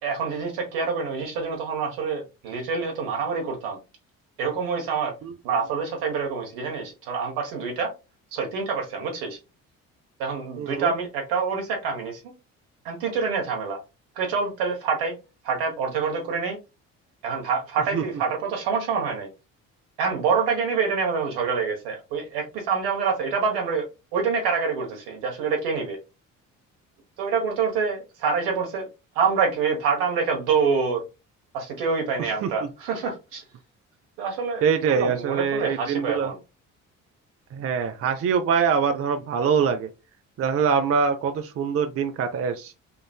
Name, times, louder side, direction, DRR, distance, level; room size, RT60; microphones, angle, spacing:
voice 1, 0.0-3.8 4.4-5.1 5.4-7.9 8.3-9.4 10.2-12.2 12.8-13.8 14.1-15.2 15.4-16.6 17.2-19.3 20.0-23.9 24.1-26.0 27.2-28.9 29.1-31.0 31.5-33.4 34.2-34.6 34.9-36.4, right 5 dB, 70° right, 1.3 m, -26 dB
voice 2, 10.6-10.9 17.9-18.0 32.4-32.5 34.6-36.3 37.5-39.9 40.4-42.7, right 6 dB, 35° right, 0.5 m, -24 dB
3.8 x 2.5 x 2.2 m
hypercardioid pair, 50°, 40 cm